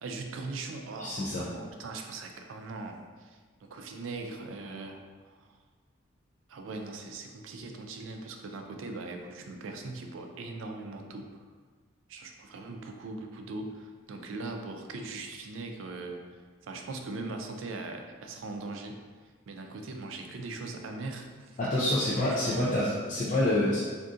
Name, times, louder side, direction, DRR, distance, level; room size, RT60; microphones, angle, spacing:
voice 1, 0.0-5.0 5.3-5.5 6.5-11.3 12.1-16.2 16.7-19.0 19.5-21.6 21.8-21.9 22.2-22.8, right 3 dB, 85° right, 4 dB, 0.4 m, -40 dB
voice 2, 1.0-1.4 21.6-23.8, left 1 dB, 40° left, -8 dB, 0.5 m, -27 dB
3.6 x 2.6 x 2.5 m, 1.5 s
head